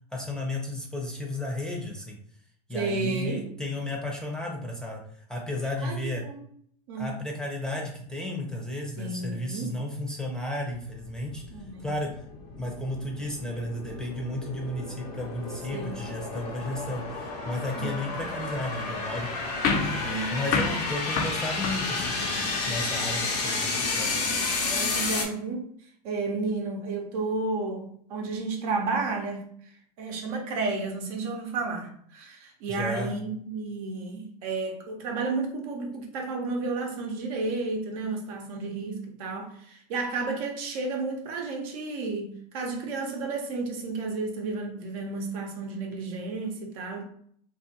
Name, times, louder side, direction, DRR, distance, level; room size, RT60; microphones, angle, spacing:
voice 1, 0.1-2.2 2.7-6.2 7.0-11.4 11.8-12.1 12.6-19.3 19.7-24.1 32.7-33.1, left 1 dB, 5° left, 0.7 m, -33 dB
voice 2, 2.7-3.5 5.8-6.4 6.9-7.1 9.0-9.7 11.5-11.9 15.7-16.1 17.8-18.2 20.0-20.8 24.7-25.7 26.0-29.5 30.0-47.0, right 3 dB, 60° right, 0.7 m, -32 dB
sound 1, 10.8-25.3, left 3 dB, 70° left, 0.8 m, -32 dB
sound 2, 19.6-22.5, left 5 dB, 45° left, 0.4 m, -30 dB
2.4 x 2.4 x 2.8 m
hypercardioid pair, 95°, 21 cm